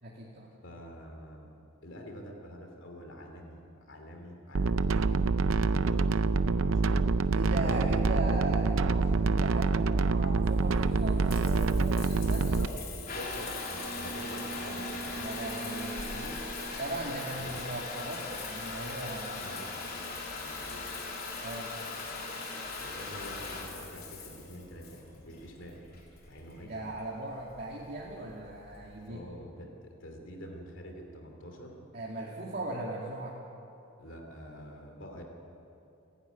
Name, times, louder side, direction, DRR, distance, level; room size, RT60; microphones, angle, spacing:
voice 1, 0.0-0.5 7.3-12.6 15.1-16.5 16.8-19.7 21.4-21.7 26.6-29.2 31.9-33.3, right 2 dB, 50° right, -4 dB, 2.3 m, -38 dB
voice 2, 0.6-1.5 1.8-5.3 5.7-6.1 6.5-8.1 12.3-15.5 17.3-17.6 19.4-20.0 20.4-20.9 22.8-25.8 26.3-26.8 29.1-31.8 34.0-35.2, equal, 65° left, 3 dB, 3.0 m, -46 dB
sound 1, 4.5-12.7, right 4 dB, 80° right, 0.6 m, -26 dB
Water tap faucet / Bathtub (filling or washing) / Trickle dribble, 10.2-29.1, left 3 dB, 50° left, 3.3 m, -40 dB
29.0 x 11.5 x 9.3 m, 2.8 s
head